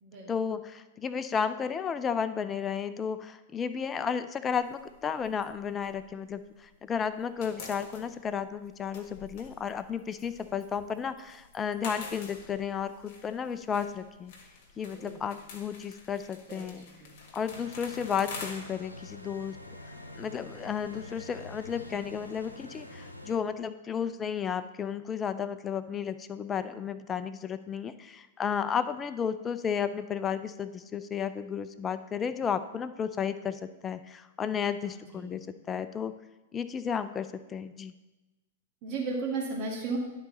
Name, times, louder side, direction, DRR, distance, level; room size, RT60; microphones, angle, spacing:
voice 1, 0.3-14.3 14.8-16.9 17.3-19.6 20.2-36.1 36.5-37.9, left 7 dB, 20° left, 12 dB, 0.4 m, -33 dB
sound 1, 4.5-6.8 7.0-22.5, left 4 dB, 45° left, 1.6 m, -48 dB
voice 2, 14.7-15.3 16.5-17.2 34.8-35.3 38.8-40.0, right 4 dB, 40° right, -1 dB, 2.1 m, -36 dB
sound 2, 17.5-23.4, left 1 dB, 90° left, 0.8 m, -46 dB
11.5 x 4.0 x 4.2 m, 1.1 s
figure-of-eight pair, 100°, 0 cm